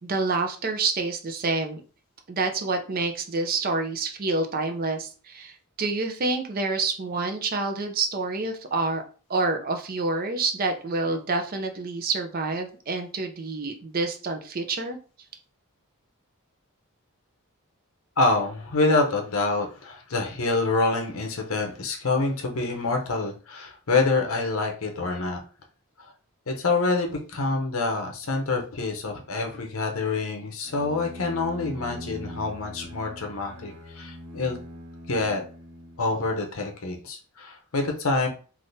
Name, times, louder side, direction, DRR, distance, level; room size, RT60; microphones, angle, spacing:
voice 1, 0.0-1.8 2.3-9.0 9.3-15.0, right 3 dB, 40° right, 5 dB, 0.5 m, -28 dB
voice 2, 18.2-25.4 26.0-26.1 26.5-34.6 35.1-35.4 36.0-38.3, left 3 dB, 70° left, 3 dB, 0.8 m, -26 dB
Bowed string instrument, 30.6-36.5, equal, 85° right, 1.2 m, -41 dB
3.5 x 2.5 x 2.6 m, 0.37 s
head